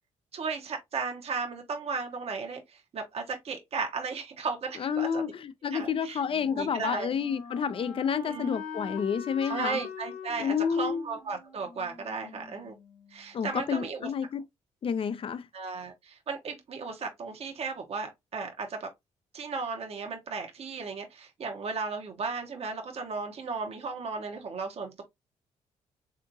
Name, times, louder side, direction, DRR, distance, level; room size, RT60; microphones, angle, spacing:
voice 1, 0.3-5.3 5.7-6.2 6.5-7.2 8.3-8.5 9.4-12.7 13.1-14.1 15.5-18.9 19.3-25.0, right 4 dB, 50° right, 0.9 m, -35 dB
voice 2, 4.8-9.8 10.4-11.0 13.3-14.5 14.8-15.5, left 7 dB, 45° left, 0.5 m, -30 dB
Wind instrument woodwind instrument, 6.3-13.1, left 5 dB, 80° left, 0.8 m, -43 dB
3.5 x 2.8 x 2.6 m
cardioid pair, 70°, 13 cm